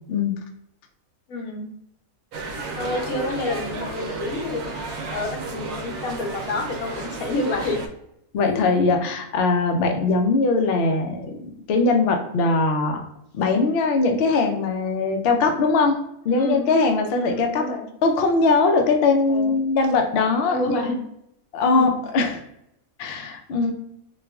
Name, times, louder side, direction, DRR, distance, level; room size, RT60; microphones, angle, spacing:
voice 1, 1.3-1.7 2.8-4.6 5.1-7.8 8.5-8.6 16.3-16.7 17.1-17.9 19.3-19.5 20.5-21.0 21.7-22.0, left 2 dB, 90° left, 2 dB, 1.2 m, -28 dB
sound 1, 2.3-7.9, right 3 dB, 85° right, 1.0 m, -32 dB
voice 2, 8.3-13.0 13.3-16.0 16.2-20.9 21.5-22.4 23.0-23.7, left 3 dB, 65° left, 4 dB, 0.6 m, -21 dB
4.1 x 2.3 x 2.2 m, 0.78 s
omnidirectional pair, 1.5 m